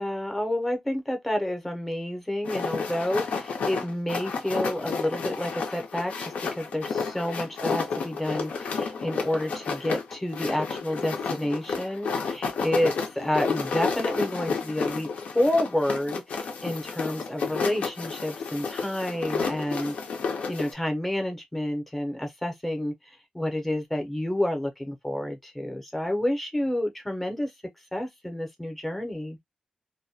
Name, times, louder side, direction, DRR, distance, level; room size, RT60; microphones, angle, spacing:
voice 1, 0.0-15.1 15.3-19.9 20.5-22.9 23.3-27.5 27.9-29.4, left 1 dB, 5° left, 0.6 m, -29 dB
sound 1, 2.4-20.7, left 5 dB, 85° left, 0.6 m, -31 dB
2.2 x 2.1 x 2.6 m
wide cardioid pair, 175°, 2 cm